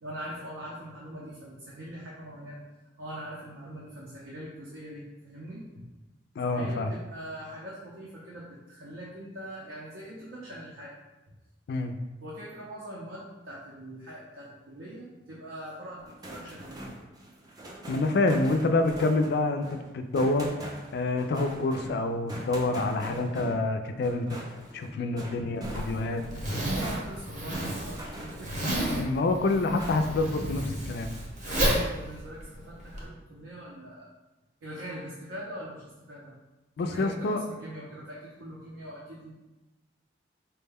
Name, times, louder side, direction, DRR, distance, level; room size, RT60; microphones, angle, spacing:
voice 1, 0.0-2.6 3.0-5.9 6.4-10.9 11.3-11.4 12.2-16.9 26.7-28.6 31.5-34.1 34.6-36.3 36.8-39.3, right 1 dB, 70° right, -5 dB, 0.6 m, -42 dB
voice 2, 6.4-6.9 11.7-11.9 17.9-20.5 20.9-24.3 24.7-26.2 28.9-31.1 36.8-37.4, left 2 dB, 55° left, 7 dB, 0.3 m, -27 dB
sound 1, 16.0-28.8 29.1-30.3, right 1 dB, 20° right, 0.4 m, -43 dB
Zipper (clothing), 25.6-33.0, right 1 dB, 40° right, 0.8 m, -31 dB
4.4 x 2.1 x 3.4 m, 1.1 s
head